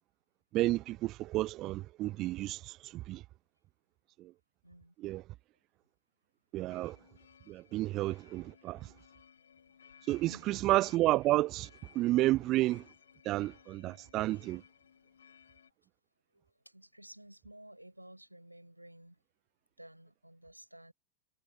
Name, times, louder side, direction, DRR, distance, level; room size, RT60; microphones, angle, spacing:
voice 1, 0.5-3.2 5.0-5.2 6.5-7.0 7.5-8.9 10.1-11.7 12.0-12.8 13.2-14.6, right 17 dB, 35° right, 0.3 m, -31 dB
voice 2, 4.6-4.9 10.2-10.6 16.3-19.2 19.8-20.9, right 1 dB, 85° right, 5.0 m, -54 dB
sound 1, 6.7-15.7, left 7 dB, 70° left, 4.8 m, -61 dB
figure-of-eight pair, 90°, 0 cm